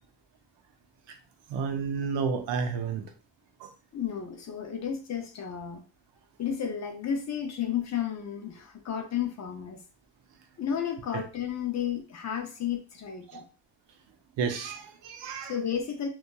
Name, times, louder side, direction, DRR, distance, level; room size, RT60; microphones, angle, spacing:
voice 1, 1.5-3.1 3.6-3.7 13.3-13.4 14.4-15.5, right 5 dB, 80° right, 6 dB, 0.6 m, -31 dB
voice 2, 3.9-5.8 6.4-9.8 10.6-13.5 15.4-16.1, left 8 dB, 40° left, 5 dB, 0.5 m, -32 dB
2.8 x 2.2 x 2.2 m, 0.33 s
cardioid pair, 130°, 43 cm